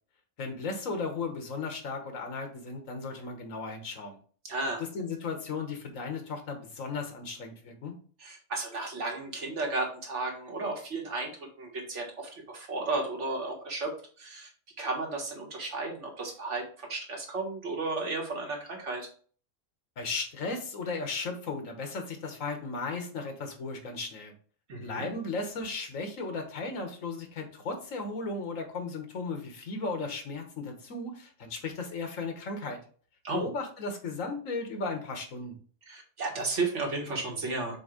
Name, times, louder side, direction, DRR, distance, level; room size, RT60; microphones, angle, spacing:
voice 1, 0.4-4.2 4.8-8.0 20.0-24.3 24.8-32.8 33.3-35.5, left 3 dB, 70° left, 5 dB, 1.6 m, -35 dB
voice 2, 4.4-4.8 8.2-13.9 14.2-14.5 14.8-19.1 24.7-25.1 33.2-33.5 35.9-37.8, right 3 dB, 60° right, 0 dB, 2.0 m, -33 dB
7.0 x 2.7 x 5.0 m, 0.43 s
omnidirectional pair, 1.4 m